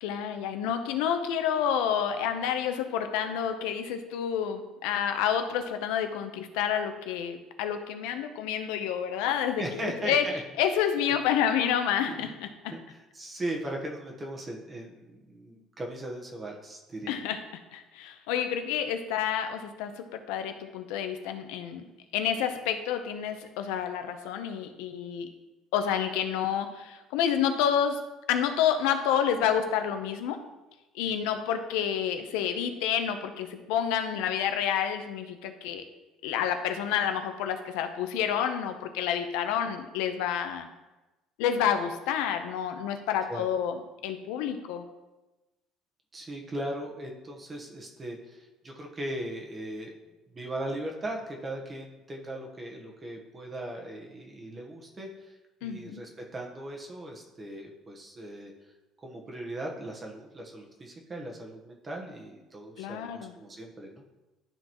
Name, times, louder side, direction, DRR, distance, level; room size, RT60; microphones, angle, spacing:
voice 1, 0.0-10.3 10.6-12.7 17.1-17.4 17.7-21.8 22.1-25.3 25.7-28.0 28.3-30.4 30.9-35.8 36.2-40.7 41.4-44.8 55.6-56.0 62.8-63.4, left 8 dB, 85° left, 7 dB, 0.7 m, -29 dB
voice 2, 9.6-10.4 11.1-11.2 12.1-12.2 12.7-17.2 43.3-43.4 46.1-49.9 50.3-58.7 59.0-64.0, right 1 dB, 25° right, 0 dB, 1.2 m, -38 dB
12.0 x 4.0 x 3.0 m, 1.1 s
cardioid pair, 110°, 0 cm